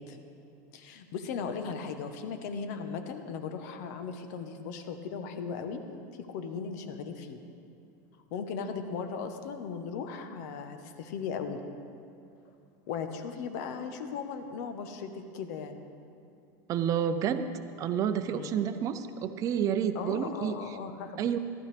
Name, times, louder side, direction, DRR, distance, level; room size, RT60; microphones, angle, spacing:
voice 1, 0.7-5.8 6.1-7.4 8.3-11.6 12.9-15.8 18.3-18.6 19.9-21.2, left 6 dB, 65° left, 7 dB, 1.0 m, -37 dB
voice 2, 16.7-17.5 17.8-20.5 21.2-21.4, right 8 dB, 35° right, 10 dB, 0.6 m, -29 dB
14.5 x 12.0 x 3.4 m, 2.6 s
supercardioid pair, 130°, 10 cm